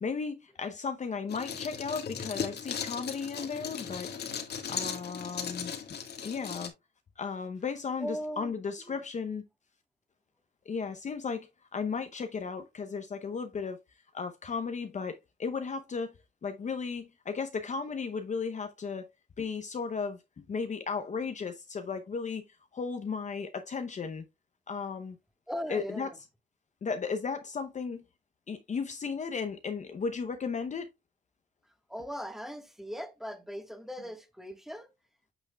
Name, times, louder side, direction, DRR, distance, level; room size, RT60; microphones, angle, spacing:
voice 1, 0.0-4.1 4.7-6.7 7.2-9.4 10.7-13.8 14.1-16.1 16.4-19.1 19.4-22.4 22.7-24.2 24.7-25.2 25.7-26.1 26.8-28.0 28.5-30.9, left 5 dB, 35° left, 0.7 m, -35 dB
sound 1, 1.3-6.7, left 7 dB, 55° left, 1.6 m, -37 dB
voice 2, 8.0-8.6 8.9-9.0 25.5-26.2 31.9-34.9, equal, ahead, 1.4 m, -39 dB
8.9 x 6.2 x 2.3 m
cardioid pair, 90°, 20 cm